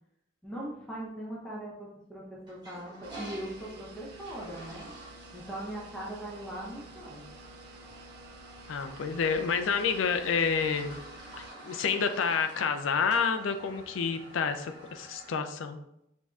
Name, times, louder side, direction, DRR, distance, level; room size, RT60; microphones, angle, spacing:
voice 1, 0.4-4.9 5.3-7.2, right 1 dB, 5° left, -5 dB, 0.7 m, -40 dB
Toilet flush, 2.4-15.4, right 1 dB, 25° right, 1.2 m, -49 dB
sound 1, 3.0-11.5, right 2 dB, 55° right, 0.4 m, -51 dB
voice 2, 8.7-11.0 11.4-15.8, left 6 dB, 75° left, 7 dB, 0.4 m, -29 dB
5.0 x 2.7 x 2.3 m, 0.78 s
head